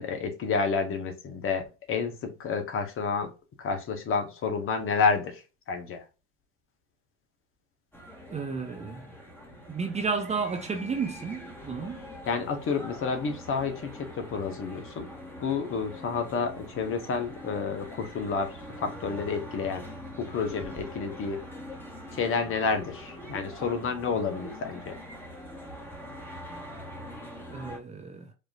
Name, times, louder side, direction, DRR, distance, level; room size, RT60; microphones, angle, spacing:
voice 1, 0.0-3.3 3.6-5.4 5.7-6.0 12.3-15.1 15.4-19.9 20.2-21.4 22.1-24.9, left 5 dB, 35° left, 1.3 m, -30 dB
sound 1, 7.9-27.8, equal, 5° left, 1.6 m, -43 dB
voice 2, 8.3-9.1 9.7-12.0 27.5-28.3, right 5 dB, 20° right, 0.7 m, -32 dB
4.9 x 3.0 x 2.6 m
supercardioid pair, 105°, 36 cm